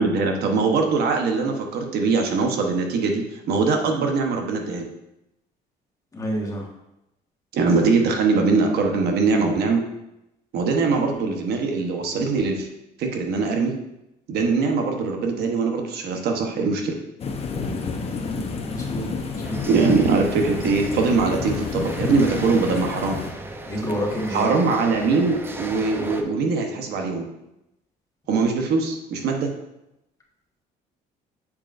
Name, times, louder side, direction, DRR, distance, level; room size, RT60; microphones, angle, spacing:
voice 1, 0.0-4.9 7.5-9.8 10.5-12.7 13.0-13.7 14.3-16.9 19.7-23.2 24.3-27.2 28.3-29.5, right 4 dB, 70° right, 3 dB, 1.0 m, -22 dB
voice 2, 6.1-6.7 11.1-11.3 18.1-19.8 23.7-24.5, equal, 20° left, -2 dB, 1.4 m, -30 dB
sound 1, 17.2-23.3, left 5 dB, 35° left, 0.8 m, -30 dB
sound 2, 19.4-26.2, right 1 dB, 15° right, 0.6 m, -36 dB
7.2 x 5.1 x 2.5 m, 0.88 s
cardioid pair, 110°, 17 cm